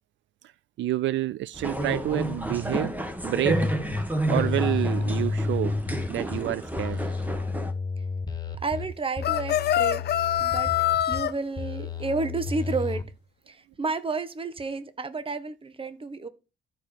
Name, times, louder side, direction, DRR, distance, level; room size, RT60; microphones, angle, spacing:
voice 1, 0.8-2.9 3.2-3.6 4.3-5.7 6.1-7.0, right 14 dB, 70° right, 0.4 m, -28 dB
sound 1, 1.5-7.7, right 1 dB, 10° right, 1.5 m, -31 dB
sound 2, 3.5-4.0 4.4-6.4 6.8-8.9 9.2-11.2 11.6-13.0, left 3 dB, 20° left, 1.8 m, -30 dB
voice 2, 8.5-10.0 10.4-13.0 13.5-16.3, right 3 dB, 25° right, 1.2 m, -31 dB
sound 3, 9.2-11.3, left 11 dB, 55° left, 0.6 m, -24 dB
13.0 x 4.9 x 4.4 m
cardioid pair, 90°, 20 cm